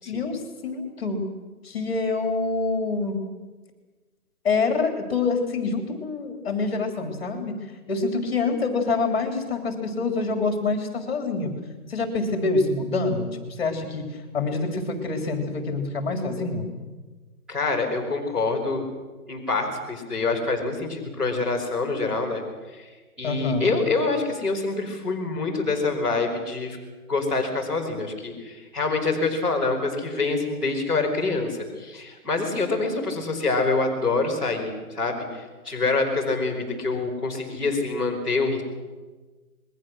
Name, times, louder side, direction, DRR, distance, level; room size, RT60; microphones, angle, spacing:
voice 1, 0.1-1.2 1.6-3.2 4.4-7.6 7.9-11.5 11.9-16.7 23.2-23.8, left 3 dB, 40° left, 4 dB, 3.6 m, -26 dB
voice 2, 17.5-18.8 19.3-22.4 22.7-22.9 23.2-26.8 27.1-38.6, left 3 dB, ahead, -10 dB, 2.9 m, -26 dB
27.0 x 21.5 x 6.4 m, 1.3 s
hypercardioid pair, 180°, 45 cm